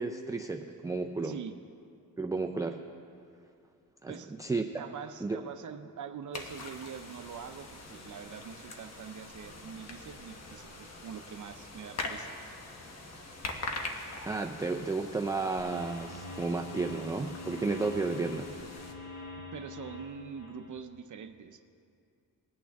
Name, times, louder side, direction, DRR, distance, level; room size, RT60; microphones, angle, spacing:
voice 1, 0.0-1.3 2.2-2.8 4.0-4.6 5.2-5.4 14.3-18.5, right 3 dB, 10° right, 3 dB, 0.3 m, -32 dB
voice 2, 1.2-1.5 4.1-4.3 4.8-12.3 19.5-21.6, right 7 dB, 60° right, 8 dB, 0.6 m, -44 dB
sound 1, 6.3-18.9, left 2 dB, 45° left, 1.1 m, -43 dB
sound 2, 15.6-20.7, left 3 dB, 85° left, 2.1 m, -45 dB
20.5 x 8.7 x 3.5 m, 2.5 s
wide cardioid pair, 160°, 35 cm